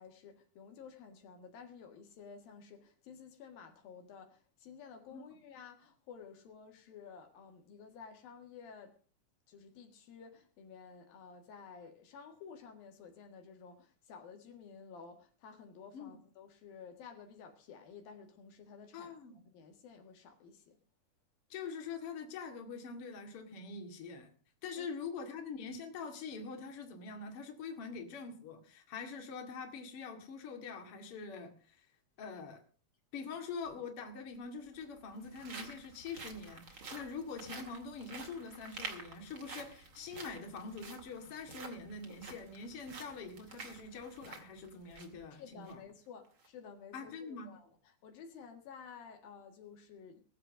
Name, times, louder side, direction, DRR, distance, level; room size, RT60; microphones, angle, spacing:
voice 1, 0.0-9.0 9.5-20.8 24.8-24.9 45.4-50.2, left 6 dB, 75° left, 3.5 m, -53 dB
voice 2, 18.9-19.4 21.5-24.3 24.6-31.9 32.2-32.6 33.1-45.8 46.9-47.5, left 5 dB, 45° left, 2.8 m, -44 dB
sound 1, 33.6-33.7 34.7-45.2 45.6-45.7 46.2-46.5, right 4 dB, 40° right, 2.7 m, -50 dB
20.0 x 7.7 x 6.3 m
omnidirectional pair, 4.2 m